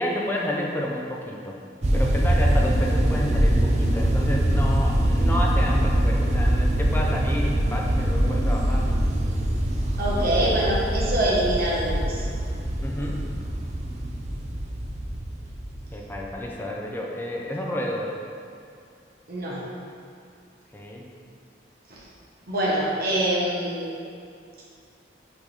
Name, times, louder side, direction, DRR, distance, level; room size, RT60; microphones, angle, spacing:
voice 1, 0.0-1.6 1.9-8.9 10.0-10.3 12.8-13.3 15.9-18.2 20.7-21.1, left 1 dB, 10° left, -2 dB, 0.7 m, -30 dB
sound 1, 1.8-16.4, right 1 dB, 40° right, 0.6 m, -23 dB
voice 2, 10.0-12.3 19.3-19.6 22.5-24.0, right 1 dB, 55° right, -6 dB, 1.3 m, -24 dB
6.2 x 4.1 x 4.9 m, 2.4 s
head